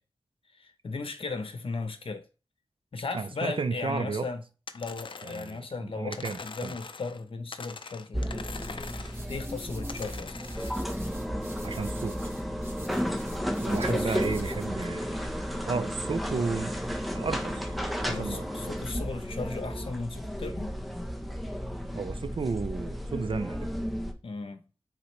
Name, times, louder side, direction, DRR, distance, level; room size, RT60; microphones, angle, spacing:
voice 1, 0.5-2.3 2.9-4.4 4.7-10.4 13.8-14.2 16.3-16.5 18.1-20.7 24.2-24.6, left 4 dB, 80° left, 0.9 m, -37 dB
voice 2, 3.1-4.2 5.2-6.7 11.6-12.2 13.6-15.1 15.7-16.7 17.1-17.7 18.2-18.4 21.9-23.7, right 4 dB, 70° right, 0.7 m, -32 dB
sound 1, 4.7-5.6 6.1-7.2 7.5-9.2 9.9-10.8, left 4 dB, 65° left, 0.5 m, -43 dB
sound 2, 8.1-24.1, equal, ahead, 1.0 m, -33 dB
sound 3, 8.5-14.7, right 1 dB, 25° right, 2.1 m, -48 dB
8.1 x 4.1 x 3.3 m
wide cardioid pair, 60°, 9 cm